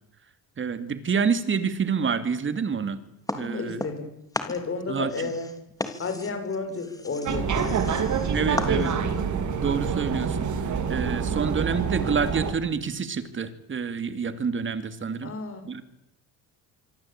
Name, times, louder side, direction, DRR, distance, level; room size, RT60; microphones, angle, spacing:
voice 1, 0.6-3.0 3.3-3.8 4.9-5.1 8.3-8.9 9.6-10.4 10.9-15.3 15.6-15.8, right 6 dB, 30° right, 11 dB, 2.8 m, -27 dB
sound 1, 3.3-4.1 4.3-9.2, left 2 dB, 10° left, 3.3 m, -35 dB
voice 2, 3.4-4.1 4.4-5.5 6.0-8.0 8.4-9.2 15.2-15.6, left 4 dB, 35° left, 7 dB, 6.6 m, -32 dB
sound 2, 7.2-12.5, right 6 dB, 50° right, 3.9 m, -26 dB
25.5 x 25.5 x 9.1 m, 0.82 s
cardioid pair, 130°, 39 cm